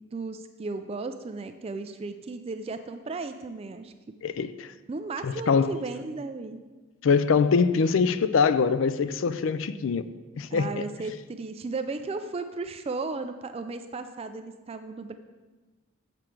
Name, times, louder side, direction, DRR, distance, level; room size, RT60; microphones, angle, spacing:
voice 1, 0.1-3.9 4.9-6.6 10.5-15.1, right 3 dB, 30° right, 9 dB, 0.3 m, -35 dB
voice 2, 4.2-4.7 5.2-5.8 7.0-10.0 10.4-10.8, left 5 dB, 70° left, 14 dB, 0.4 m, -23 dB
7.3 x 6.8 x 4.6 m, 1.2 s
head